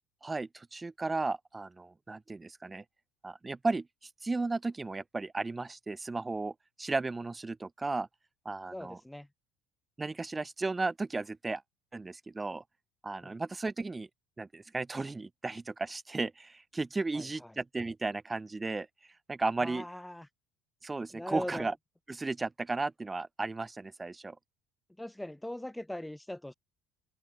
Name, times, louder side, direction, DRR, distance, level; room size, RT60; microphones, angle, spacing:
voice 1, 0.2-2.8 3.2-8.1 8.4-9.0 10.0-11.6 11.9-12.6 13.0-14.1 14.4-18.9 19.3-19.8 20.8-21.7 22.1-24.4, right 3 dB, 20° right, 2.5 m, -35 dB
voice 2, 8.7-9.3 13.2-13.4 17.1-17.6 19.6-20.3 21.1-21.7 25.0-26.5, left 1 dB, 5° left, 5.3 m, -41 dB
hypercardioid pair, 70°, 0 cm